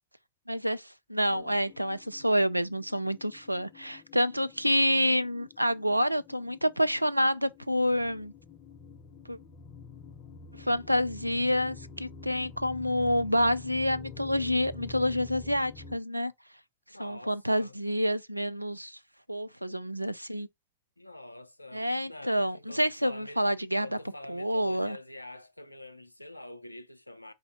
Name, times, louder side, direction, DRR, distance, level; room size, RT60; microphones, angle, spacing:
voice 1, 0.5-8.3 9.3-9.4 10.5-16.3 17.0-19.0 19.3-20.5 21.7-23.9 24.3-25.0, equal, 90° right, 0.3 m, -28 dB
sound 1, 1.3-16.0, left 5 dB, 40° left, 0.6 m, -48 dB
voice 2, 16.9-17.8 21.0-23.6 23.8-27.3, left 1 dB, 85° left, 0.5 m, -46 dB
4.3 x 2.7 x 3.6 m
figure-of-eight pair, 90°, 0 cm